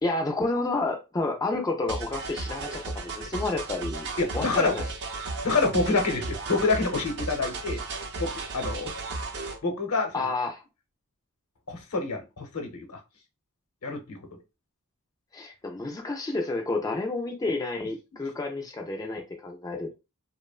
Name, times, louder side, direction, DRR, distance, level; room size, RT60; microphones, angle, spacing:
voice 1, 0.0-4.8 10.1-10.6 15.3-19.9, left 2 dB, 15° left, 0.3 m, -30 dB
sound 1, 1.9-9.6, right 3 dB, 55° right, 0.5 m, -35 dB
voice 2, 4.2-4.8 5.4-7.8 8.2-9.0 9.6-10.3 11.7-13.0 13.8-14.2, left 3 dB, 80° left, 0.8 m, -27 dB
2.8 x 2.1 x 2.3 m
head